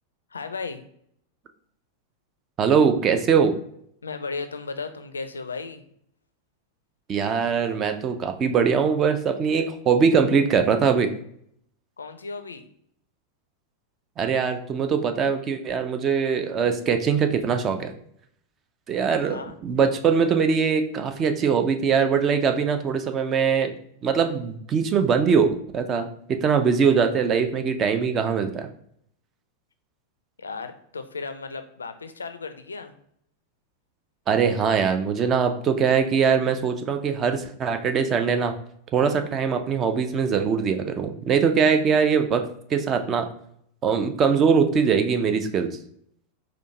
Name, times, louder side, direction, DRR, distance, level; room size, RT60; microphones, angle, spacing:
voice 1, 0.3-0.8 4.0-5.8 12.0-12.7 19.1-19.5 30.4-33.0, left 4 dB, 75° left, 9 dB, 0.3 m, -35 dB
voice 2, 2.6-3.6 7.1-11.1 14.2-17.9 18.9-23.8 24.0-28.7 34.3-38.5 38.9-43.3 43.8-45.7, right 6 dB, 30° right, 7 dB, 0.4 m, -22 dB
4.4 x 2.5 x 2.8 m, 0.68 s
figure-of-eight pair, 90°, 0 cm